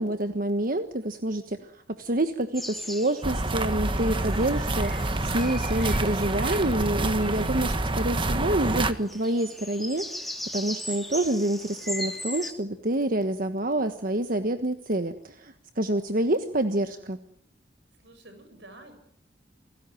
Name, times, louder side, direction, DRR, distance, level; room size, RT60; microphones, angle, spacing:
voice 1, 0.0-4.9 5.2-17.2, right 1 dB, 50° right, 8 dB, 1.4 m, -27 dB
sound 1, 2.5-12.5, left 1 dB, ahead, 2.9 m, -39 dB
sound 2, 3.2-8.9, right 2 dB, 30° right, 1.5 m, -27 dB
voice 2, 16.2-17.2 18.0-18.9, right 1 dB, 80° right, 7 dB, 7.9 m, -51 dB
29.0 x 19.0 x 9.3 m, 0.65 s
head